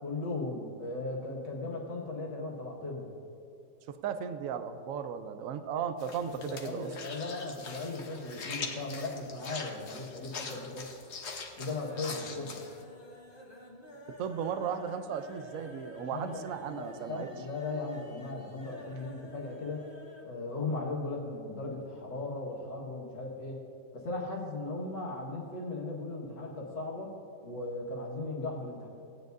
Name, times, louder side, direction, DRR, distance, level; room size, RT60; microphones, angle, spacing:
voice 1, 0.0-3.1 6.4-10.9 11.6-12.6 16.1-19.9 20.2-23.6 23.9-27.1 27.4-28.9, left 2 dB, 85° left, -2 dB, 2.3 m, -37 dB
voice 2, 3.9-6.9 14.2-17.3, right 7 dB, 65° right, 10 dB, 0.9 m, -36 dB
sound 1, 6.0-12.8, left 4 dB, 50° left, 1.0 m, -43 dB
sound 2, 10.5-11.0 11.3-20.3 20.6-20.7 21.0-21.1, equal, 30° left, 1.5 m, -51 dB
17.5 x 9.4 x 2.6 m, 2.6 s
omnidirectional pair, 1.8 m